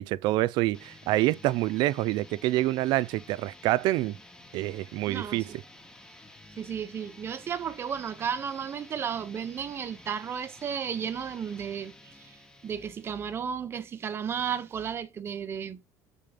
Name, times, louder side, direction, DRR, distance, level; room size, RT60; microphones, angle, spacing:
voice 1, 0.0-4.2 4.5-5.4, right 17 dB, 70° right, 0.5 m, -26 dB
sound 1, 0.7-13.6, left 1 dB, 10° left, 1.1 m, -52 dB
voice 2, 5.1-5.6 6.6-12.4 12.6-15.8, right 7 dB, 30° right, 0.7 m, -34 dB
7.4 x 4.3 x 5.1 m
cardioid pair, 155°, 8 cm